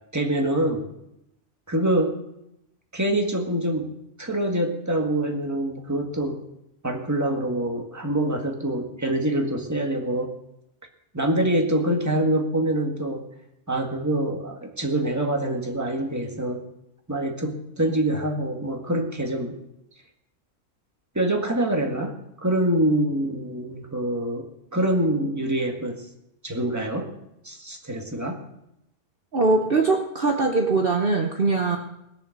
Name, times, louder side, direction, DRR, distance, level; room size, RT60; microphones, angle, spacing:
voice 1, 0.1-0.8 1.7-2.2 2.9-3.9 4.2-6.4 6.8-10.3 11.1-13.2 13.7-16.6 17.1-19.5 21.2-22.1 22.4-24.5 24.7-26.1 26.4-27.1 27.4-28.4, right 1 dB, 15° right, 2 dB, 1.9 m, -25 dB
voice 2, 29.3-31.8, right 3 dB, 45° right, 3 dB, 1.2 m, -21 dB
20.0 x 7.1 x 6.6 m, 0.84 s
omnidirectional pair, 1.3 m